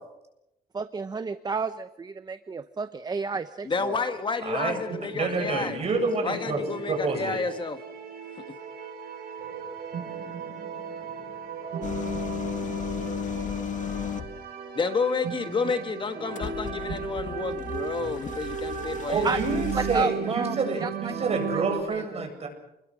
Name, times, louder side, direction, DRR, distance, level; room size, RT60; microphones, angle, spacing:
voice 1, 0.7-4.0 19.2-19.4 19.7-21.1 21.5-22.3, right 4 dB, 25° right, 11 dB, 0.9 m, -31 dB
voice 2, 3.6-5.8 6.2-7.8 14.7-19.2, left 4 dB, 30° left, 8 dB, 1.5 m, -30 dB
voice 3, 4.5-4.8 5.2-6.6 6.9-7.4 19.1-22.5, right 3 dB, 40° right, 4 dB, 7.7 m, -28 dB
sound 1, 4.9-21.8, right 6 dB, 75° right, 5.7 m, -36 dB
sound 2, 11.8-14.4 16.4-20.0, left 7 dB, 55° left, 1.8 m, -34 dB
29.0 x 21.5 x 6.4 m, 0.87 s
cardioid pair, 135°, 16 cm